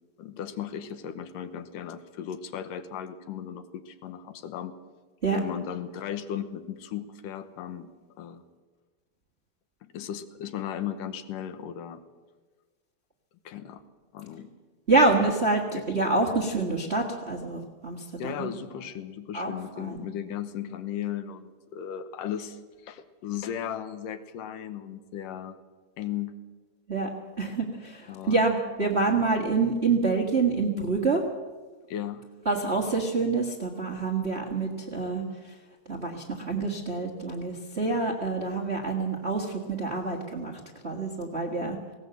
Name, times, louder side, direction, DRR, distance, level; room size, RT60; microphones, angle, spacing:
voice 1, 0.2-4.8 5.3-7.9 8.2-8.4 9.8-12.0 13.5-13.8 14.1-14.5 18.2-25.6 26.0-26.4 28.1-28.4 31.9-32.2, left 9 dB, 75° left, 10 dB, 2.6 m, -36 dB
voice 2, 14.9-18.5 19.3-20.0 26.9-27.1 27.4-31.2 32.4-35.2 35.9-40.5 40.8-41.8, right 3 dB, 40° right, 1 dB, 0.9 m, -27 dB
19.0 x 17.5 x 7.8 m, 1.4 s
omnidirectional pair, 3.9 m